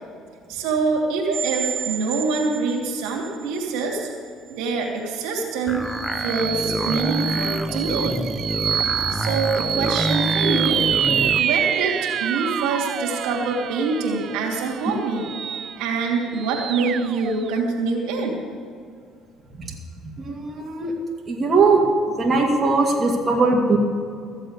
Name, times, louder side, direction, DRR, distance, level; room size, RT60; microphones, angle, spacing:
voice 1, 0.5-4.1 4.5-5.8 6.2-8.3 9.1-10.8 11.4-15.3 15.8-18.4, right 4 dB, 85° right, -1 dB, 2.6 m, -25 dB
sound 1, 1.3-3.3 3.8-3.9 5.9-17.6, right 9 dB, 55° right, 0.3 m, -27 dB
sound 2, 5.7-11.5, equal, ahead, 0.8 m, -27 dB
voice 2, 20.2-20.9 21.3-21.8 22.2-23.8, right 3 dB, 35° right, -2 dB, 2.5 m, -20 dB
14.5 x 7.6 x 8.2 m, 2.3 s
supercardioid pair, 90°, 0 cm